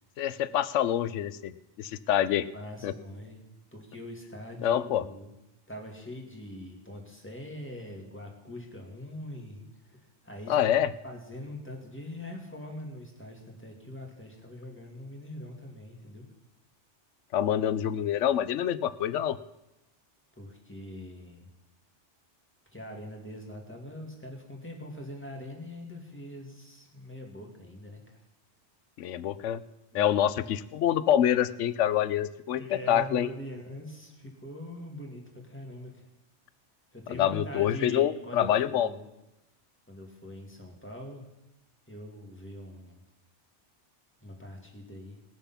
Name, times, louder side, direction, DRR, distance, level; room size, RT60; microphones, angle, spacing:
voice 1, 0.2-1.5 1.8-2.5 2.8-2.9 4.6-5.0 10.5-10.9 17.3-19.4 29.0-29.6 29.9-33.3 37.1-38.9, left 10 dB, 85° left, 16 dB, 0.9 m, -26 dB
voice 2, 2.5-3.4 3.7-5.3 5.7-10.7 11.0-16.3 20.4-21.5 22.7-28.2 29.9-30.3 32.6-36.1 36.9-39.0 39.9-41.3 41.9-43.0 44.2-45.2, left 1 dB, 10° left, 0 dB, 2.3 m, -43 dB
19.5 x 6.9 x 5.7 m, 0.94 s
omnidirectional pair, 1.2 m